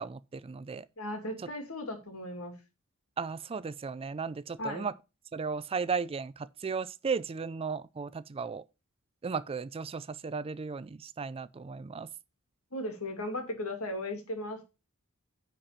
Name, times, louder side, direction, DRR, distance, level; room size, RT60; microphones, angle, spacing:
voice 1, 0.0-0.8 3.2-4.9 5.3-8.6 9.2-12.1, right 5 dB, 25° right, 0.4 m, -35 dB
voice 2, 1.0-2.5 4.6-4.9 12.7-14.6, left 1 dB, 75° left, 2.4 m, -36 dB
10.0 x 4.4 x 5.7 m
head